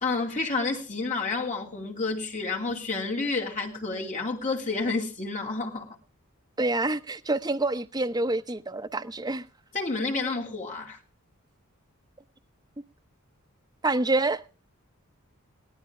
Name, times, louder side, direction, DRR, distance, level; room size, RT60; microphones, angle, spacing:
voice 1, 0.0-6.0 9.7-11.0, left 3 dB, 35° left, 2.7 m, -30 dB
voice 2, 6.6-9.4 13.8-14.4, right 2 dB, 20° right, 0.8 m, -27 dB
18.0 x 12.5 x 3.3 m
head